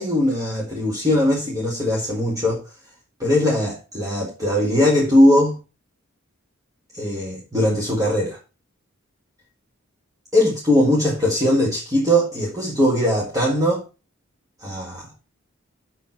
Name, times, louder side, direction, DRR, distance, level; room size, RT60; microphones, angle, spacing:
voice 1, 0.0-2.6 3.2-5.6 6.9-8.4 10.3-13.8 14.6-15.1, left 1 dB, 15° right, 1.9 m, -20 dB
7.1 x 6.3 x 5.7 m
head